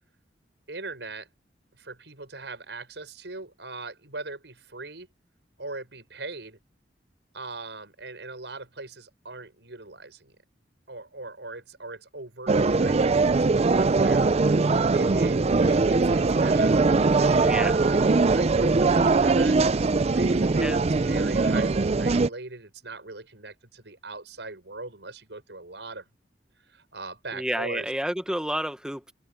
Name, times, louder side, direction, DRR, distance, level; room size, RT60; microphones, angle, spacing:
voice 1, 0.7-1.3 1.8-5.1 5.6-6.6 7.3-10.3 10.9-14.3 14.9-16.8 17.1-19.6 20.0-26.1 26.7-27.9, right 3 dB, 80° right, 6.3 m, -40 dB
sound 1, 12.5-22.3, right 3 dB, 35° right, 0.5 m, -21 dB
sound 2, 15.7-21.9, right 6 dB, 65° right, 5.5 m, -47 dB
voice 2, 17.4-17.7 20.6-20.8 27.3-29.1, right 1 dB, 5° right, 0.9 m, -30 dB
head